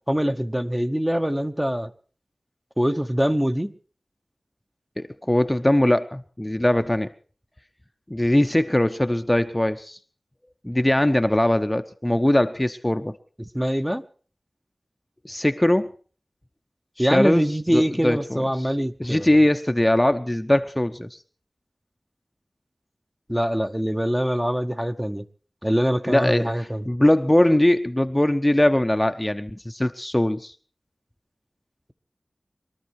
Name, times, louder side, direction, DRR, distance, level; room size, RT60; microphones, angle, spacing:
voice 1, 0.1-1.9 2.8-3.7 13.4-14.0 17.0-19.3 23.3-25.3 25.6-26.8, equal, 10° right, 7 dB, 1.0 m, -24 dB
voice 2, 5.0-7.1 8.1-10.0 10.6-13.2 15.2-15.9 17.0-17.5 17.7-18.4 19.0-21.2 26.1-30.5, left 1 dB, 15° left, 8 dB, 0.8 m, -21 dB
22.5 x 13.0 x 4.8 m, 0.41 s
wide cardioid pair, 45°, 0 cm